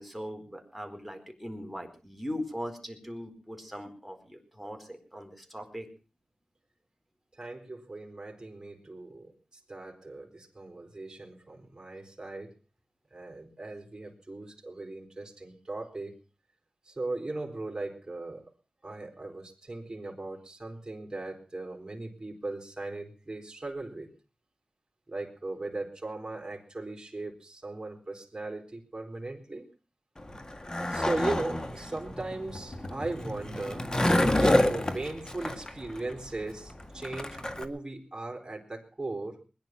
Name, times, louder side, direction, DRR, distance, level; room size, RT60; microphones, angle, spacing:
voice 1, 0.0-5.9, equal, ahead, 6 dB, 4.4 m, -40 dB
voice 2, 7.4-12.5 13.1-16.2 16.9-18.4 18.8-24.1 25.1-29.7 30.9-33.9 34.4-39.4, right 2 dB, 30° right, 1 dB, 4.0 m, -38 dB
Skateboard, 30.2-37.7, left 1 dB, 30° left, 1.9 m, -28 dB
21.0 x 11.0 x 6.0 m, 0.36 s
wide cardioid pair, 55°, 2 cm